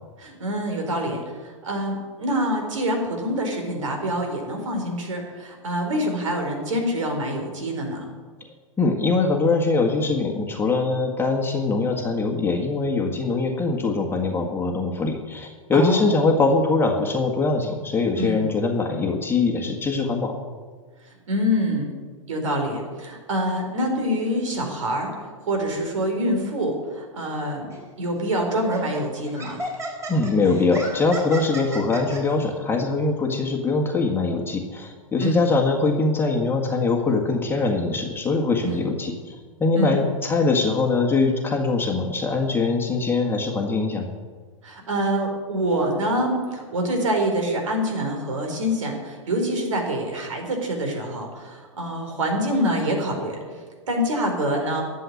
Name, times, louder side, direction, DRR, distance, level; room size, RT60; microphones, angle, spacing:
voice 1, 0.2-8.1 15.7-16.0 18.2-18.4 21.0-21.9 22.3-27.7 28.0-29.6 35.2-35.5 38.6-38.9 39.8-40.0 44.6-54.8, equal, 70° right, 3 dB, 4.4 m, -26 dB
voice 2, 8.8-20.4 30.1-44.1, left 3 dB, 15° left, 1 dB, 1.6 m, -22 dB
Laughter, 27.7-27.9 28.5-32.2, right 1 dB, 15° right, 4.0 m, -34 dB
11.5 x 7.9 x 9.5 m, 1.5 s
hypercardioid pair, 110°, 17 cm